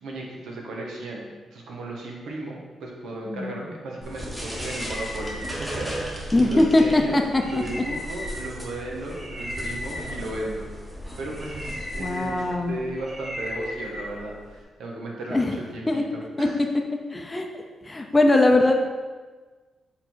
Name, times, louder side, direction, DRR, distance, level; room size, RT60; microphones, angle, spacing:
voice 1, 0.0-10.7 11.2-16.6, right 2 dB, 85° right, -2 dB, 1.4 m, -35 dB
sound 1, 4.0-14.6, equal, 10° right, 1.3 m, -35 dB
voice 2, 6.3-7.4 12.0-12.7 15.3-15.5 15.9-16.0 16.4-16.5 17.1-17.5 17.9-18.8, left 2 dB, 15° left, 3 dB, 0.6 m, -20 dB
6.8 x 3.8 x 4.6 m, 1.4 s
cardioid pair, 125°, 0 cm